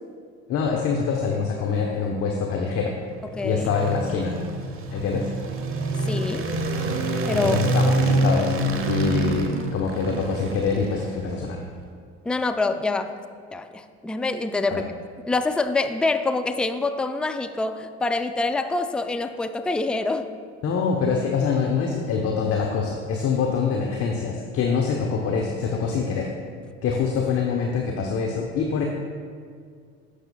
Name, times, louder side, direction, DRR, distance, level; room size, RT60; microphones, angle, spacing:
voice 1, 0.5-3.0 3.4-4.4 4.9-5.3 7.4-11.6 14.7-14.8 20.6-26.3 26.8-28.8, left 5 dB, 45° left, 0 dB, 1.0 m, -25 dB
sound 1, 3.1-11.5, right 2 dB, 40° right, 1.1 m, -26 dB
voice 2, 3.3-3.7 6.0-6.5 7.2-7.6 12.3-13.1 13.5-14.9 15.3-20.3, left 3 dB, 5° left, 8 dB, 0.4 m, -25 dB
15.0 x 6.6 x 2.4 m, 2.1 s
hypercardioid pair, 65°, 33 cm